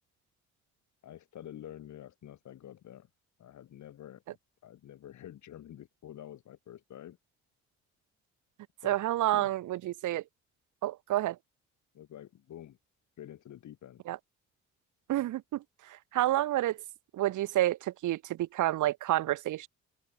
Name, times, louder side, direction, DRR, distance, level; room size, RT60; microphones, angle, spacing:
voice 1, 1.0-3.1 3.4-4.2 4.6-7.2 8.8-9.0 9.3-9.5 11.9-12.8 13.2-14.0, left 11 dB, 70° left, 5.4 m, -48 dB
voice 2, 8.8-10.2 10.8-11.4 14.1-14.2 15.1-16.8 17.1-19.7, right 14 dB, 80° right, 1.4 m, -29 dB
open air
cardioid pair, 90°, 30 cm